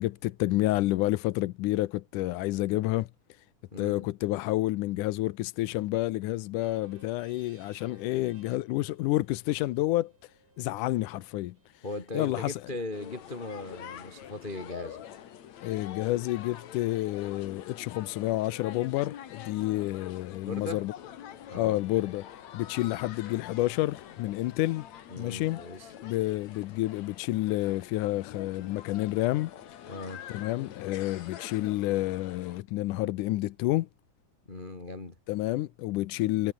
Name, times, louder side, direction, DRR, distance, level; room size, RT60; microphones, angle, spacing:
voice 1, 0.0-3.4 3.8-10.3 10.6-11.9 12.1-12.7 15.6-20.9 21.5-24.9 25.2-25.6 26.0-29.5 30.3-33.9 35.3-36.5, left 17 dB, 75° left, 2.1 m, -29 dB
voice 2, 3.7-4.1 11.8-15.0 20.4-20.8 21.5-21.8 25.1-25.9 29.9-30.2 34.5-35.1, left 2 dB, 25° left, 1.0 m, -38 dB
sound 1, 6.6-14.5, right 3 dB, 60° right, 9.6 m, -62 dB
sound 2, 12.9-32.6, left 10 dB, 55° left, 2.6 m, -46 dB
omnidirectional pair, 4.1 m